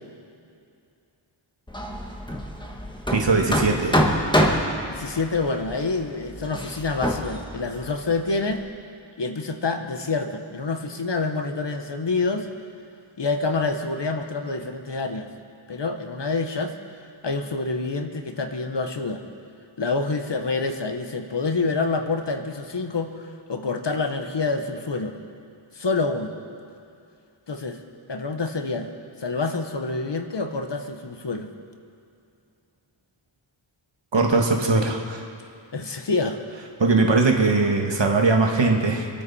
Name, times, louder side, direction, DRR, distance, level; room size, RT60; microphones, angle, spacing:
Hammer, 1.7-8.6, equal, 10° left, 1.6 m, -26 dB
voice 1, 3.1-4.0 34.1-35.2 36.8-39.1, right 3 dB, 60° right, 1 dB, 1.8 m, -20 dB
voice 2, 4.9-8.6 9.2-12.5 13.2-15.3 15.7-16.7 17.2-19.2 19.8-25.2 25.7-26.3 27.5-27.8 28.1-28.9 29.2-31.5 35.7-36.4, left 3 dB, 55° left, 6 dB, 1.2 m, -27 dB
26.5 x 9.1 x 4.3 m, 2.5 s
wide cardioid pair, 55°, 50 cm